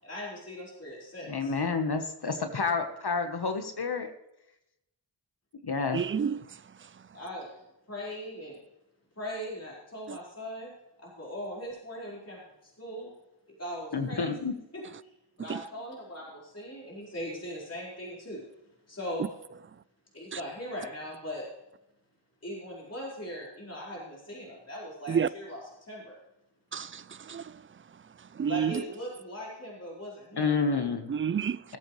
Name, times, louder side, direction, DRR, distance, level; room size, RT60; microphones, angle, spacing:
voice 1, 0.0-1.5 7.1-8.6 9.2-10.7 11.0-13.1 13.6-14.3 14.7-18.4 18.9-19.3 20.1-21.4 22.4-26.2 28.5-30.5, equal, 35° left, 4.7 m, -40 dB
voice 2, 1.3-4.1 5.6-6.0 13.9-14.5 30.4-31.1, left 4 dB, 55° left, 1.3 m, -29 dB
voice 3, 5.9-6.4 10.1-10.2 15.5-15.6 25.1-25.3 26.7-27.0 27.3-27.4 28.4-28.7 31.1-31.6, right 7 dB, 30° right, 0.4 m, -28 dB
18.5 x 8.4 x 3.2 m
cardioid pair, 50°, 45 cm